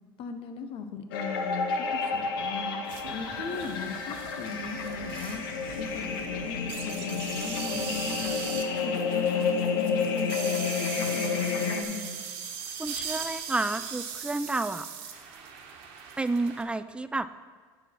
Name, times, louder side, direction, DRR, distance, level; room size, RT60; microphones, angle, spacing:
voice 1, 0.2-2.8 3.1-5.4 5.8-8.4 8.8-12.2, left 6 dB, 55° left, 7 dB, 0.9 m, -38 dB
sound 1, 1.1-11.8, left 5 dB, 85° left, 0.9 m, -30 dB
sound 2, 2.8-10.9, right 9 dB, 80° right, 0.7 m, -47 dB
sound 3, 6.7-16.6, right 7 dB, 65° right, 1.3 m, -38 dB
voice 2, 12.8-15.4 16.2-17.3, right 2 dB, 10° right, 13 dB, 0.4 m, -31 dB
9.6 x 6.4 x 4.5 m, 1.6 s
hypercardioid pair, 85°, 11 cm